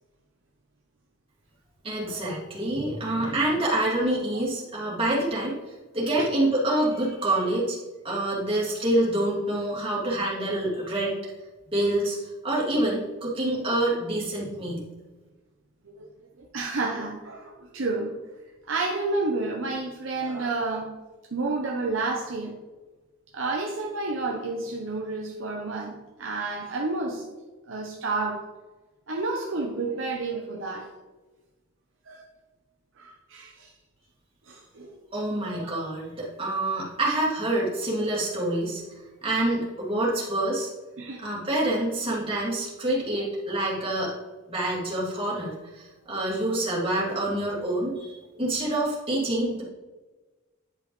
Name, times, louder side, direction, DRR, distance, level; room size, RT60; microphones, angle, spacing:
voice 1, 1.8-5.6 5.9-7.8 8.0-11.3 11.7-14.9 35.1-38.8 39.2-40.7 41.2-44.1 44.5-49.6, right 1 dB, 25° right, -5 dB, 2.4 m, -27 dB
voice 2, 16.4-18.1 18.7-20.9 21.3-22.6 23.3-27.2 27.7-28.4 29.1-30.9 32.1-32.2 33.0-33.7 34.5-35.0 35.5-35.7 41.0-41.2, right 3 dB, 65° right, 0 dB, 0.9 m, -30 dB
10.5 x 5.2 x 3.2 m, 1.2 s
head